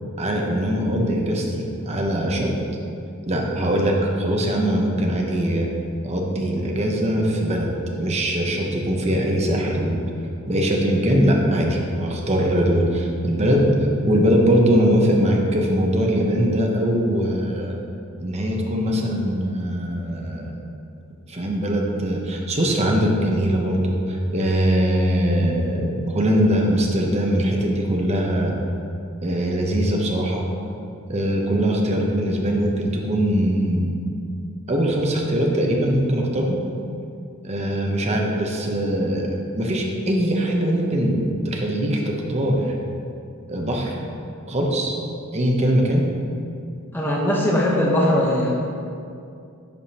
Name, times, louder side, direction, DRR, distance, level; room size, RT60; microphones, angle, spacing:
voice 1, 0.2-2.5 3.3-5.7 6.0-10.0 10.5-13.7 14.0-17.7 18.2-20.5 21.3-28.5 29.2-30.4 31.1-33.9 34.7-36.6 37.4-42.7 43.5-43.9 44.5-44.9 45.3-46.1, equal, 30° right, 0 dB, 0.8 m, -21 dB
voice 2, 46.9-48.5, left 1 dB, 10° left, -5 dB, 0.8 m, -20 dB
10.5 x 4.9 x 2.9 m, 2.5 s
head